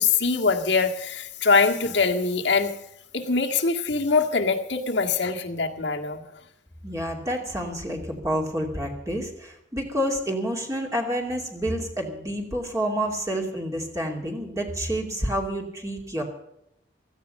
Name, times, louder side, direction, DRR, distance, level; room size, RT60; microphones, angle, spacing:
voice 1, 0.0-2.7 3.1-6.2, left 4 dB, 70° left, 4 dB, 1.9 m, -23 dB
voice 2, 6.8-16.2, equal, 20° right, 0 dB, 2.7 m, -29 dB
16.5 x 14.5 x 5.4 m, 0.78 s
head